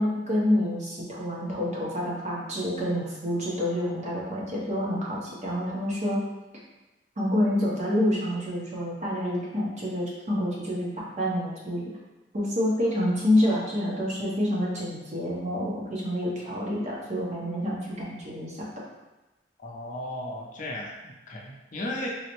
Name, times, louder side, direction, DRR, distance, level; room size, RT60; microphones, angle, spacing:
voice 1, 0.0-6.2 7.2-11.8 12.3-18.7, left 1 dB, 40° right, -5 dB, 0.8 m, -27 dB
voice 2, 19.6-22.1, left 1 dB, 45° left, -2 dB, 0.5 m, -35 dB
3.8 x 2.1 x 2.9 m, 1.1 s
head